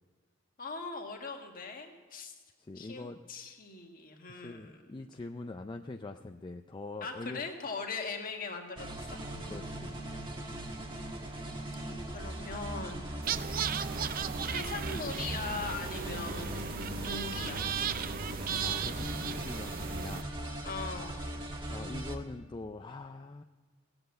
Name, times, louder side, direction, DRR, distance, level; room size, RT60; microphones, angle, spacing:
voice 1, 0.6-2.3 2.7-5.0 7.0-9.7 12.1-13.1 13.7-14.1 14.4-16.7 17.0-17.6 20.6-21.2, left 4 dB, 45° left, 2 dB, 1.7 m, -40 dB
voice 2, 2.6-3.2 4.3-7.4 9.5-10.0 18.6-20.3 21.7-23.4, left 2 dB, 20° left, 5 dB, 0.4 m, -43 dB
sound 1, 8.8-22.2, right 1 dB, 25° right, 1.4 m, -39 dB
sound 2, 13.2-20.2, right 7 dB, 45° right, 0.5 m, -36 dB
17.0 x 7.9 x 7.7 m, 1.5 s
head